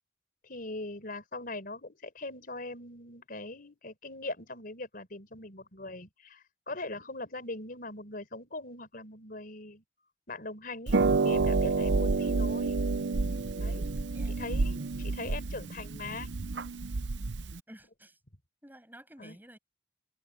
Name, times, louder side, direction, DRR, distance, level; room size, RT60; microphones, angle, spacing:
voice 1, 0.4-9.8 10.3-11.0 11.2-12.8 13.6-13.8 14.3-16.3 19.2-19.4, left 2 dB, 55° left, 4.4 m, -41 dB
Harp, 10.9-17.6, right 3 dB, 80° right, 0.8 m, -29 dB
voice 2, 15.5-15.8 17.7-18.2 18.6-19.6, right 1 dB, 10° right, 8.0 m, -52 dB
open air
head